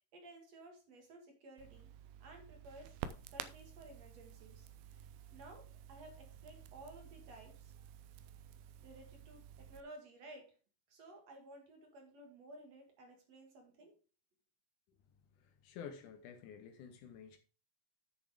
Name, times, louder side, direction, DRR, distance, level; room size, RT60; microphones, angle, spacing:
voice 1, 0.1-1.9 2.2-3.0 3.3-7.7 8.8-10.5 10.9-13.9, right 1 dB, 55° right, 2.8 m, -56 dB
Crackle, 1.6-9.8, right 10 dB, 90° right, 2.4 m, -51 dB
voice 2, 15.6-17.4, left 7 dB, 75° left, 2.1 m, -50 dB
8.4 x 6.6 x 4.8 m
omnidirectional pair, 4.0 m